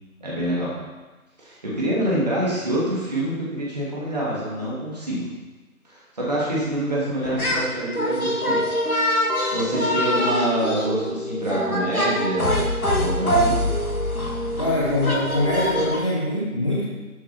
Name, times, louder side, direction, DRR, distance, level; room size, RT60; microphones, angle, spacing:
voice 1, 0.2-0.7 1.4-5.3 5.9-8.6 9.5-12.6 12.9-13.6, right 1 dB, 30° right, -6 dB, 3.0 m, -26 dB
sound 1, 7.2-7.7 7.9-16.0, equal, 75° left, 3.0 m, -24 dB
voice 2, 14.6-16.9, left 1 dB, 20° left, -6 dB, 1.3 m, -23 dB
12.0 x 8.2 x 4.6 m, 1.2 s
figure-of-eight pair, 165°, 44 cm